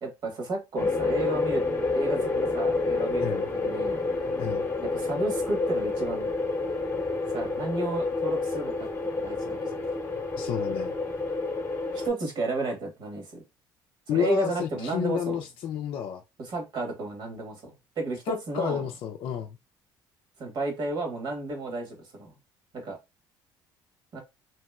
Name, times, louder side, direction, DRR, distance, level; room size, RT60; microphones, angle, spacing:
voice 1, 0.0-1.6 1.9-4.0 4.8-6.3 7.3-9.7 11.9-13.4 14.1-15.4 16.4-18.8 20.4-22.3 22.7-23.0 24.1-24.2, right 2 dB, 50° right, 1.3 m, -32 dB
sound 1, 0.8-12.1, left 3 dB, 25° left, 0.9 m, -29 dB
voice 2, 10.4-11.0 14.1-16.2 18.3-19.6, left 9 dB, 60° left, 0.4 m, -30 dB
2.9 x 2.8 x 2.3 m
supercardioid pair, 95°, 10 cm